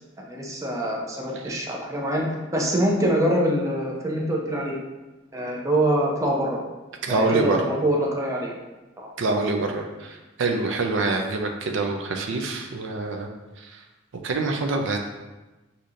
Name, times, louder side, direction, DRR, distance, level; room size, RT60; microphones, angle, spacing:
voice 1, 0.3-2.3 2.5-4.8 5.3-6.6 7.1-8.5 9.0-9.1, right 1 dB, 15° right, -2 dB, 0.6 m, -24 dB
voice 2, 7.0-7.7 9.2-13.3 13.6-13.8 14.2-15.0, right 3 dB, 65° right, 3 dB, 0.5 m, -25 dB
6.5 x 2.8 x 2.5 m, 1.1 s
head